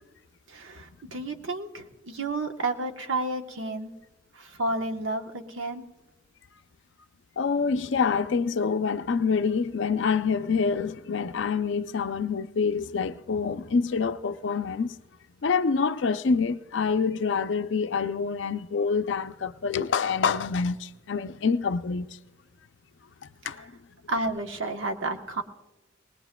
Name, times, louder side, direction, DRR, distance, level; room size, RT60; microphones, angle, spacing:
voice 1, 0.5-3.9 4.3-5.8 23.4-23.7 24.1-25.4, right 2 dB, 80° right, 1.0 m, -31 dB
voice 2, 7.4-15.0 15.4-22.2 23.5-23.7, left 5 dB, 70° left, 0.5 m, -26 dB
20.5 x 20.0 x 2.2 m
head